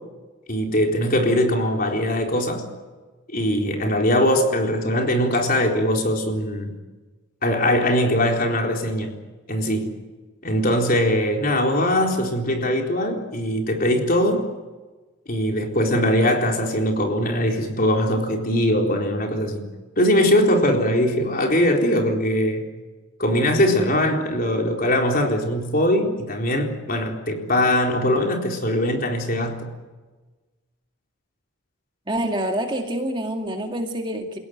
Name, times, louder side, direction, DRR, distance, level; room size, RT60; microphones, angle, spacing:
voice 1, 0.5-2.6 3.3-6.8 7.4-9.1 9.5-9.9 10.4-14.4 15.3-19.7 20.0-22.7 23.2-29.7, left 1 dB, 40° left, 2 dB, 4.1 m, -21 dB
voice 2, 32.1-34.4, right 1 dB, 20° right, 3 dB, 2.2 m, -26 dB
29.5 x 17.0 x 9.5 m, 1.3 s
head